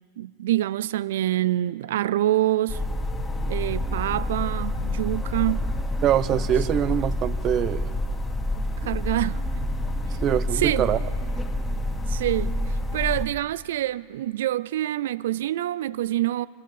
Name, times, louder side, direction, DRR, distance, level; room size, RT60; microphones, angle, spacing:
voice 1, 0.2-2.8 3.5-5.7 8.8-9.4 10.5-10.9 12.1-16.5, right 14 dB, 70° right, 0.4 m, -26 dB
sound 1, 2.7-13.3, left 1 dB, 10° left, 2.3 m, -28 dB
voice 2, 6.0-7.9 10.2-11.0, right 10 dB, 35° right, 0.8 m, -23 dB
24.5 x 14.5 x 7.3 m
hypercardioid pair, 105°, 0 cm